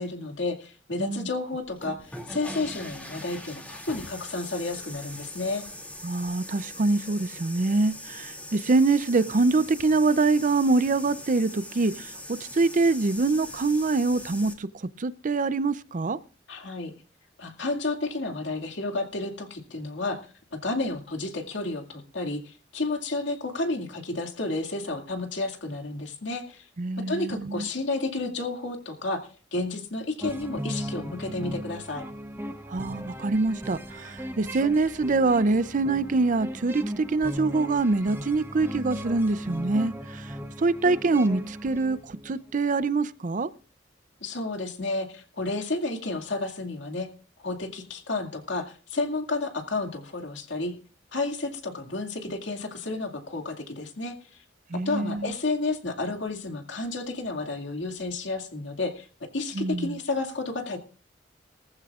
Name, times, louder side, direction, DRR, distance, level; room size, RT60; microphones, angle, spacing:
voice 1, 0.0-5.6 16.5-16.9 17.4-20.2 20.5-26.7 27.0-29.2 29.5-32.0 44.2-47.1 47.4-50.8 51.1-54.2 54.7-60.8, left 2 dB, 75° left, 2.3 m, -31 dB
voice 2, 1.0-1.3 6.0-16.2 26.8-27.7 32.7-43.5 54.7-55.3 59.5-60.0, right 3 dB, 45° right, 0.5 m, -25 dB
sound 1, 1.7-14.5, left 1 dB, 10° left, 2.5 m, -41 dB
sound 2, 30.2-42.5, equal, 10° right, 0.9 m, -37 dB
19.5 x 14.5 x 2.4 m
head